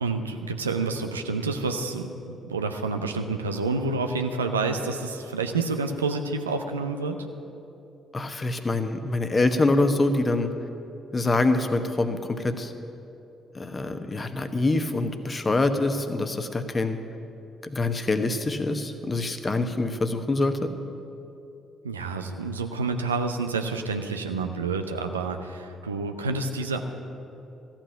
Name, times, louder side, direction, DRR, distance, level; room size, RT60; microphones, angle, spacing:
voice 1, 0.0-7.2 21.8-26.8, right 3 dB, 90° right, 6 dB, 0.5 m, -28 dB
voice 2, 8.1-10.5 11.1-12.7 13.5-17.0 17.6-20.7, left 2 dB, 30° left, 8 dB, 1.0 m, -25 dB
14.0 x 5.9 x 8.8 m, 2.7 s
figure-of-eight pair, 45°, 0 cm